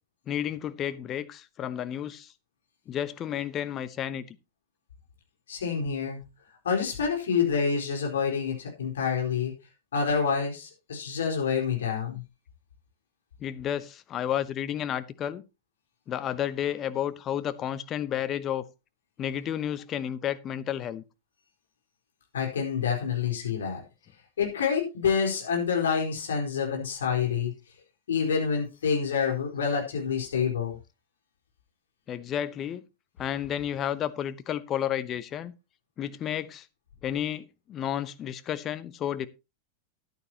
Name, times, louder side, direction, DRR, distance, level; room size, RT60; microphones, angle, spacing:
voice 1, 0.3-2.3 2.9-4.4 13.4-15.4 16.1-18.6 19.2-21.0 32.1-32.8 33.2-35.5 36.0-36.7 37.0-39.3, left 10 dB, 30° left, 0.9 m, -31 dB
voice 2, 5.5-6.2 6.6-9.5 9.9-12.2 22.3-23.8 24.4-27.5 28.1-30.8, left 6 dB, 65° left, 4.4 m, -27 dB
14.0 x 11.0 x 2.9 m
figure-of-eight pair, 90°, 0 cm